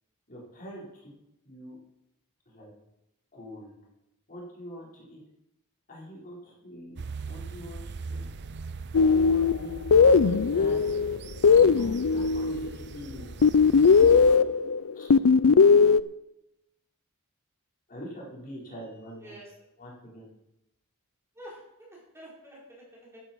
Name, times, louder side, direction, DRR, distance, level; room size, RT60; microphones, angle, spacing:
voice 1, 0.3-1.1 1.4-1.8 2.5-2.7 3.3-3.8 4.3-5.2 5.9-6.9 7.2-7.8 8.1-8.3 9.0-10.8 11.5-13.3 14.0-14.4 14.9-15.1 17.9-19.3 19.8-20.2, equal, 40° left, -5 dB, 5.1 m, -44 dB
sound 1, 7.0-14.4, right 4 dB, 50° right, 0.6 m, -40 dB
sound 2, 8.9-12.7 13.4-16.0, left 5 dB, 65° left, 0.4 m, -19 dB
voice 2, 19.2-19.5 21.3-23.2, equal, 10° right, -5 dB, 4.9 m, -48 dB
13.0 x 12.5 x 4.7 m, 0.86 s
head